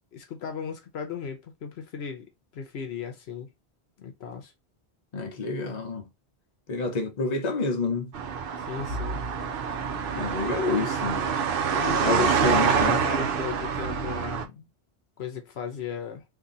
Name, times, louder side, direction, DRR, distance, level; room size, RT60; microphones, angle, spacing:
voice 1, 0.1-3.5 4.0-4.5 8.6-9.2 11.7-14.7 15.2-16.2, left 7 dB, 75° left, 0.9 m, -36 dB
voice 2, 5.1-6.0 6.7-8.1 10.1-11.4 12.0-13.0, left 3 dB, 45° left, 0.8 m, -28 dB
sound 1, 8.1-14.4, right 6 dB, 60° right, 0.7 m, -26 dB
Bowed string instrument, 8.9-11.9, right 1 dB, 45° right, 1.1 m, -40 dB
2.8 x 2.6 x 3.7 m
omnidirectional pair, 1.1 m